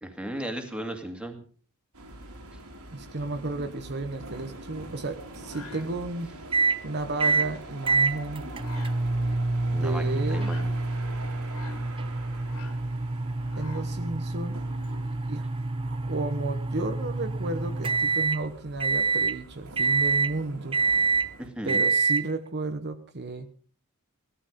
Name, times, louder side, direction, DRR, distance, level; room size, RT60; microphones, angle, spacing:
voice 1, 0.0-1.4 9.7-10.7 21.4-21.9, right 1 dB, 5° right, 5 dB, 2.2 m, -36 dB
sound 1, 1.9-21.5, right 1 dB, 80° right, 3.3 m, -44 dB
voice 2, 2.9-6.3 6.8-8.5 9.7-10.5 13.6-14.6 15.3-15.4 15.9-20.8 21.6-23.5, right 2 dB, 50° right, 8 dB, 1.1 m, -33 dB
sound 2, 5.2-15.2, left 3 dB, 80° left, 3.5 m, -48 dB
sound 3, 6.5-6.8 7.2-7.5 7.9-18.4 18.8-19.4 19.8-20.3 20.7-21.3 21.7-22.2, right 3 dB, 25° right, 0.6 m, -27 dB
17.0 x 13.0 x 5.3 m, 0.43 s
head